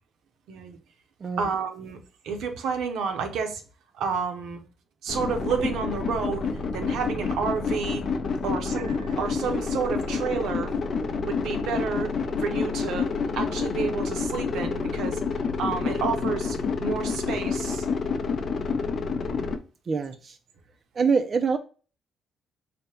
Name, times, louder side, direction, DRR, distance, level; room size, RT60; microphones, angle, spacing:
voice 1, 1.4-2.0 2.2-3.6 3.9-4.6 5.0-8.0 8.4-10.7 11.2-12.1 12.4-15.2 15.6-17.9, right 5 dB, 80° right, 0.7 m, -30 dB
sound 1, 5.1-19.6, left 5 dB, 55° left, 0.5 m, -28 dB
voice 2, 19.9-20.4 20.9-21.6, right 5 dB, 45° right, 0.3 m, -24 dB
3.3 x 2.1 x 4.2 m
cardioid pair, 90°, 0 cm